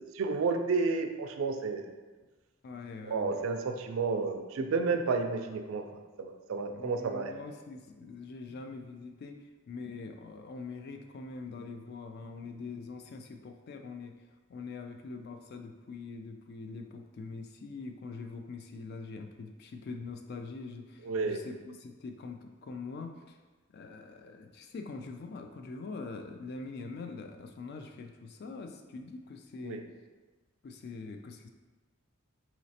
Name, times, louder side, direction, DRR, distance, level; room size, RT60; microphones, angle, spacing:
voice 1, 0.0-1.9 3.1-5.8 6.2-7.3 21.0-21.4 29.6-29.8, right 4 dB, 70° right, 6 dB, 0.3 m, -31 dB
voice 2, 2.6-3.4 6.7-14.1 14.5-23.4 23.7-29.8 30.6-31.5, left 4 dB, 50° left, 5 dB, 0.3 m, -43 dB
4.0 x 3.0 x 2.7 m, 1.3 s
head